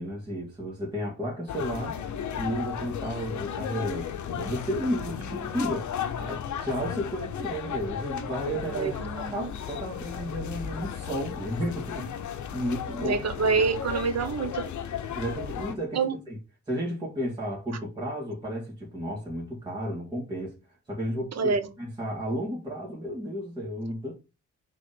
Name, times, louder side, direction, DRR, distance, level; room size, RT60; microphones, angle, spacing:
voice 1, 0.0-2.0 2.4-5.9 6.2-13.2 15.1-16.4 16.7-24.1, equal, 15° right, 2.2 m, -33 dB
sound 1, 1.5-15.7, left 8 dB, 60° left, 0.9 m, -35 dB
voice 2, 8.7-9.5 13.0-14.6 15.9-16.2 21.4-21.7, right 5 dB, 50° right, 1.1 m, -27 dB
5.1 x 3.7 x 5.2 m
cardioid pair, 130°, 33 cm